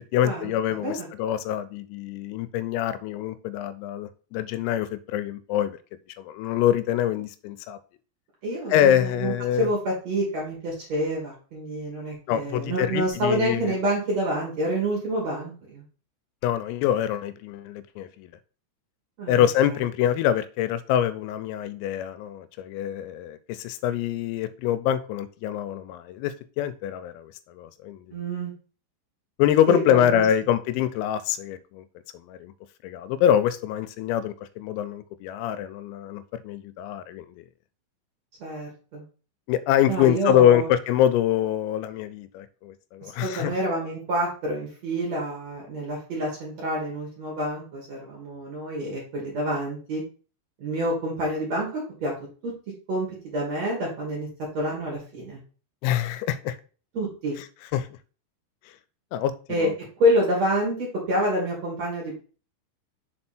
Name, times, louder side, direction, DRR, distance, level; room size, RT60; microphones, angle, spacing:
voice 1, 0.1-5.8 6.2-7.8 8.7-9.7 12.3-13.8 16.4-18.3 19.3-28.2 29.4-31.8 32.1-32.5 32.8-37.4 39.5-43.5 55.8-56.6 57.7-57.9 59.1-59.7, left 10 dB, 90° left, 3.3 m, -25 dB
voice 2, 8.4-15.8 19.2-19.4 28.1-28.5 29.7-30.2 38.4-39.0 39.9-40.7 43.0-50.0 50.6-52.1 52.4-52.5 52.9-53.1 53.3-54.3 54.5-55.4 56.9-57.4 59.5-59.7 60.0-62.1, equal, 50° right, 2.3 m, -27 dB
6.7 x 4.3 x 4.4 m
omnidirectional pair, 5.8 m